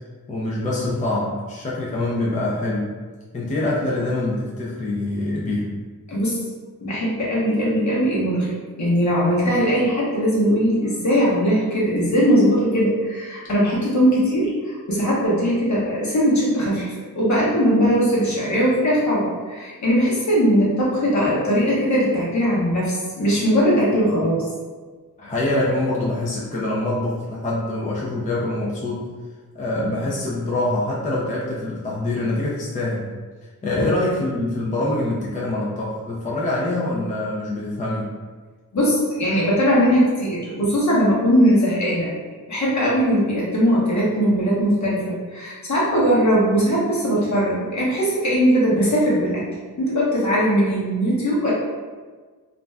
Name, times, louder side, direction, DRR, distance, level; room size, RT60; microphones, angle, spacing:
voice 1, 0.3-2.9 3.3-5.7 25.2-29.1 29.5-33.1 33.6-38.1, left 2 dB, 20° left, -5 dB, 0.4 m, -24 dB
voice 2, 6.1-6.4 6.8-8.5 8.8-24.5 33.7-33.9 38.7-42.1 42.5-49.4 49.8-51.5, equal, 50° left, -6 dB, 1.0 m, -20 dB
2.5 x 2.1 x 3.3 m, 1.4 s
wide cardioid pair, 95°, 35 cm